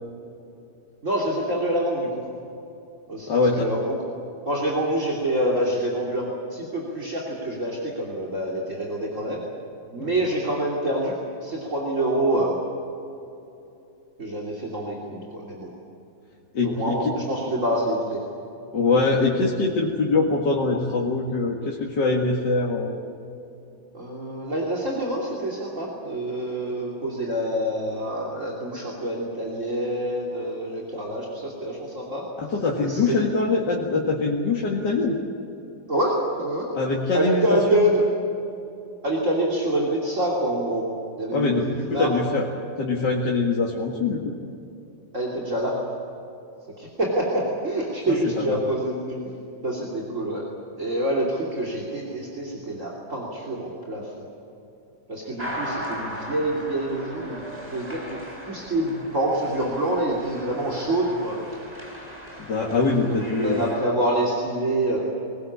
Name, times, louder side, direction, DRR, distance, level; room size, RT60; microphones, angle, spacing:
voice 1, 1.0-2.2 3.1-4.0 4.4-9.4 9.9-11.1 11.4-12.6 14.2-15.7 16.6-18.2 23.9-32.2 32.8-33.2 35.9-36.7 37.1-38.1 39.0-40.8 41.2-42.1 45.1-45.8 46.8-49.2 49.6-50.4 50.8-54.2 55.1-57.4 57.7-61.4 63.1-65.0, right 1 dB, 45° right, -2 dB, 3.3 m, -26 dB
voice 2, 3.3-3.7 10.0-10.1 16.5-17.1 18.7-22.9 32.4-35.2 36.7-37.9 41.3-42.5 42.8-44.3 48.1-48.6 62.4-63.6, left 3 dB, 90° left, -2 dB, 2.6 m, -23 dB
sound 1, 55.4-63.8, equal, 20° right, 4.2 m, -38 dB
22.5 x 19.5 x 8.6 m, 2.8 s
omnidirectional pair, 1.8 m